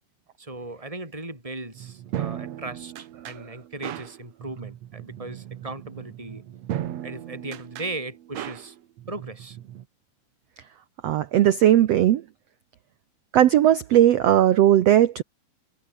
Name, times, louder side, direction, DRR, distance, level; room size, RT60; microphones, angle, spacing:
voice 1, 0.4-6.6 7.0-8.8 9.1-9.6, right 2 dB, 10° right, 6.8 m, -37 dB
sound 1, 1.7-9.8, right 12 dB, 60° right, 1.9 m, -37 dB
voice 2, 11.0-12.2 13.3-15.2, right 12 dB, 85° right, 1.4 m, -17 dB
omnidirectional pair, 4.2 m